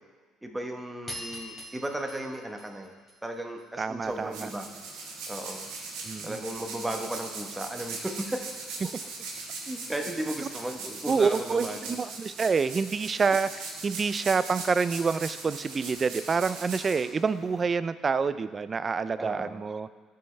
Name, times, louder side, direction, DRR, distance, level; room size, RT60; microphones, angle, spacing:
voice 1, 0.4-2.9 3.2-4.6 5.3-5.7 6.2-8.4 9.7-12.0 19.2-19.7, right 1 dB, 10° right, 3 dB, 1.0 m, -35 dB
sound 1, 1.1-3.6, equal, 10° left, 2.9 m, -43 dB
voice 2, 3.8-4.5 6.0-6.4 11.1-13.5 13.8-19.9, right 5 dB, 30° right, 14 dB, 0.3 m, -27 dB
sound 2, 4.0-17.6, right 3 dB, 85° right, 1.6 m, -40 dB
13.0 x 5.6 x 3.3 m, 1.4 s
cardioid pair, 95°, 0 cm